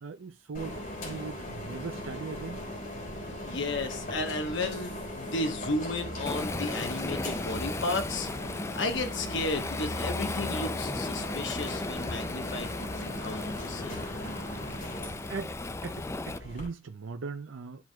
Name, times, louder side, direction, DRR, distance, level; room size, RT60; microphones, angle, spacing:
voice 1, 0.0-2.6 15.3-15.6 15.8-17.8, right 5 dB, 80° right, 0.5 m, -39 dB
sound 1, 0.5-16.7, left 1 dB, 50° left, 4.4 m, -39 dB
voice 2, 3.4-8.3 8.7-14.0, left 2 dB, 65° left, 1.0 m, -33 dB
Waves surf, 6.3-16.4, left 2 dB, 15° left, 0.3 m, -36 dB
13.5 x 4.5 x 2.2 m
head